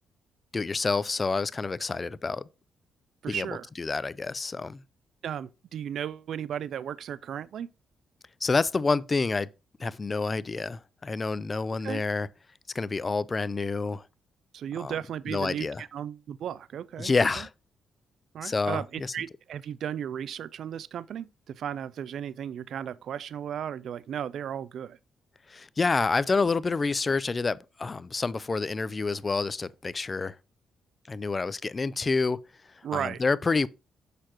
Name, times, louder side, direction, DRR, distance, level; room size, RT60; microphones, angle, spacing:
voice 1, 0.5-2.4 3.3-3.5 3.8-4.8 8.4-9.5 9.8-12.3 12.7-14.0 14.8-15.0 15.3-15.8 17.0-17.5 18.4-19.1 25.5-30.4 31.1-32.4 32.9-33.7, left 4 dB, 35° left, 0.4 m, -28 dB
voice 2, 3.2-3.7 5.2-7.7 11.8-12.0 14.5-17.4 18.3-25.0 32.8-33.2, right 9 dB, 70° right, 0.3 m, -35 dB
6.7 x 5.8 x 2.9 m
supercardioid pair, 60°, 0 cm